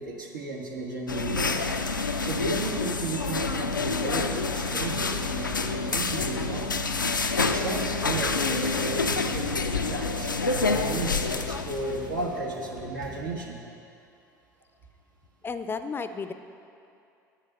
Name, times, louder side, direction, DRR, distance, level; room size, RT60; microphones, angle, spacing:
voice 1, 0.0-1.6 2.2-6.7 7.4-13.7, right 2 dB, 80° right, -2 dB, 1.3 m, -34 dB
sound 1, 1.1-12.2, left 3 dB, 90° left, 0.4 m, -28 dB
sound 2, 5.5-13.5, right 2 dB, 60° right, 1.6 m, -46 dB
voice 2, 15.4-16.3, left 5 dB, 20° left, 10 dB, 0.4 m, -32 dB
8.7 x 6.5 x 6.6 m, 2.6 s
figure-of-eight pair, 70°, 10 cm